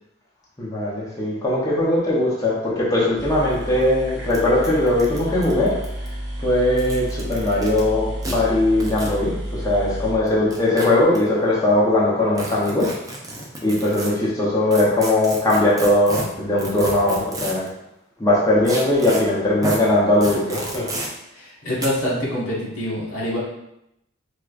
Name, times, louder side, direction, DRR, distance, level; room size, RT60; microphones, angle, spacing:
voice 1, 0.6-5.8 6.4-12.9 13.6-17.6 18.2-20.9, left 1 dB, 15° left, -7 dB, 0.7 m, -20 dB
sound 1, 2.9-3.0 3.2-11.0, equal, 55° right, 0.9 m, -31 dB
sound 2, 3.5-3.6 3.8-3.9 4.3-4.4 4.6-6.1 6.7-7.8 8.2-8.3 8.8-9.2 10.3-11.2 12.4-14.1 14.7-17.7 18.7-19.2 19.6-19.8 20.2-21.1 21.8-21.9, right 1 dB, 15° right, 0.5 m, -31 dB
voice 2, 21.3-23.4, equal, 80° left, -5 dB, 1.2 m, -25 dB
4.7 x 2.2 x 2.4 m, 0.84 s
head